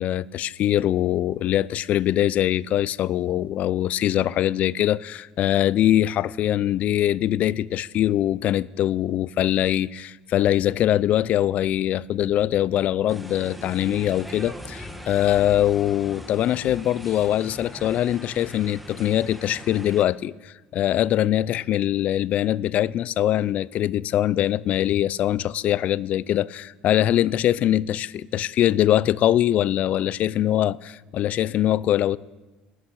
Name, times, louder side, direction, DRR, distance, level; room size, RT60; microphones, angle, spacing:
voice 1, 0.0-32.2, left 12 dB, 50° left, 0.4 m, -22 dB
sound 1, 13.1-20.0, equal, ahead, 1.2 m, -40 dB
12.5 x 8.1 x 9.9 m
cardioid pair, 130°, 3 cm